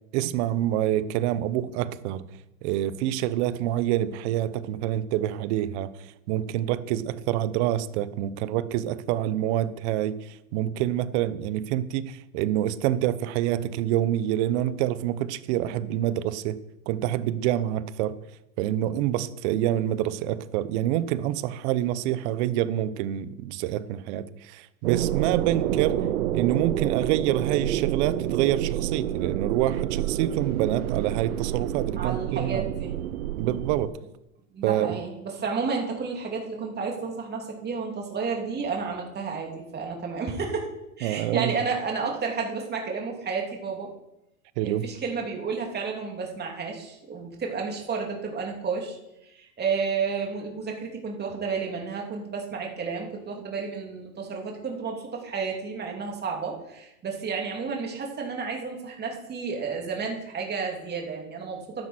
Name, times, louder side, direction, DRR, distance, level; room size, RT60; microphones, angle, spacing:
voice 1, 0.1-2.3 2.6-16.6 16.9-18.2 18.6-26.0 26.3-32.7 33.4-34.0 34.6-35.0 41.0-41.5 44.6-44.9, right 12 dB, 55° right, 16 dB, 0.9 m, -27 dB
sound 1, 24.8-33.9, right 12 dB, 90° right, 0.7 m, -28 dB
voice 2, 32.0-32.9 34.5-40.7 41.0-43.9 44.6-49.0 49.2-61.9, right 5 dB, 25° right, 1 dB, 2.9 m, -31 dB
12.0 x 10.5 x 4.4 m, 0.88 s
hypercardioid pair, 115°, 42 cm